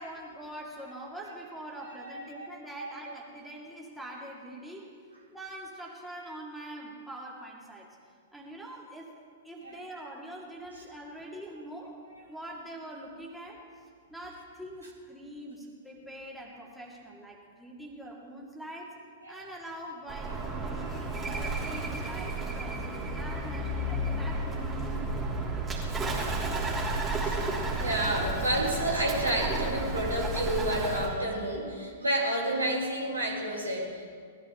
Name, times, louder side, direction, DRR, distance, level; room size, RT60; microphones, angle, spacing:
voice 1, 0.0-4.9 5.3-8.0 8.3-13.8 14.1-19.0 19.3-25.8, right 1 dB, ahead, -4 dB, 2.4 m, -44 dB
voice 2, 1.8-2.5 2.8-3.1 9.6-9.8 19.2-19.6 21.2-21.6 27.1-34.1, right 1 dB, 85° right, -3 dB, 3.6 m, -31 dB
Bird, 20.1-31.1, right 2 dB, 15° right, 3.1 m, -32 dB
20.0 x 13.5 x 3.8 m, 2.1 s
figure-of-eight pair, 105°, 0 cm